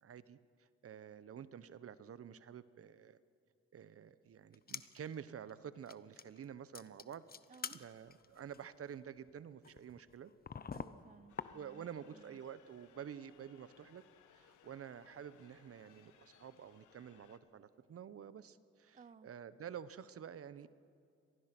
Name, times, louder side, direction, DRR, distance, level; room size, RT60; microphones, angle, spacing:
voice 1, 0.0-3.2 3.7-7.2 7.7-10.3 11.5-14.0 14.3-20.7, right 8 dB, 50° right, 15 dB, 1.0 m, -50 dB
sound 1, 4.5-5.1 5.5-5.6 5.9-6.4 6.7-12.0 12.3-13.0 13.3-13.4 14.0-16.2 16.6-16.7, left 6 dB, 30° left, 0.8 m, -50 dB
voice 2, 7.5-7.8 10.7-12.4 18.9-19.3, right 6 dB, 25° right, 15 dB, 0.5 m, -59 dB
sound 2, 11.3-17.4, left 9 dB, 80° left, 1.5 m, -67 dB
25.5 x 19.0 x 6.1 m, 2.4 s
cardioid pair, 90°, 30 cm